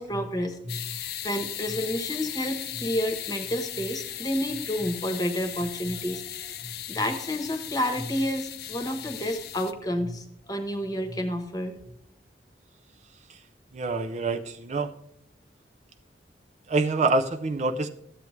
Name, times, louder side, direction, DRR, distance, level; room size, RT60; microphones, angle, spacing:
voice 1, 0.0-11.8, equal, 20° left, 6 dB, 1.1 m, -30 dB
sound 1, 0.7-9.7, left 11 dB, 60° left, 0.6 m, -37 dB
voice 2, 13.7-14.9 16.7-17.9, right 3 dB, 40° right, 7 dB, 0.5 m, -26 dB
13.5 x 8.2 x 3.2 m, 0.71 s
head